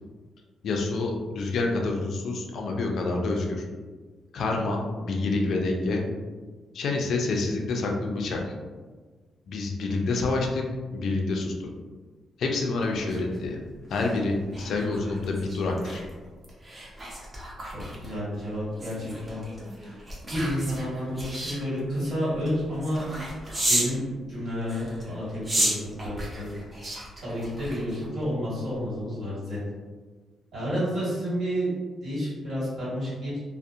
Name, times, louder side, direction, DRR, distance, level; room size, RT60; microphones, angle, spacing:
voice 1, 0.6-3.6 4.3-6.0 6.7-8.4 9.5-10.6 10.9-11.7 12.4-13.6 13.9-16.0, left 3 dB, 65° left, 1 dB, 0.4 m, -27 dB
sound 1, 12.8-24.0 24.6-28.2 28.7-28.9, right 1 dB, 25° right, 0.5 m, -34 dB
voice 2, 17.6-19.4 19.8-20.0 20.3-23.0 23.6-26.5 26.8-26.9 27.2-29.6 30.5-31.7 32.0-33.3, equal, 50° right, -9 dB, 1.4 m, -30 dB
2.6 x 2.0 x 2.4 m, 1.4 s
cardioid pair, 130°, 0 cm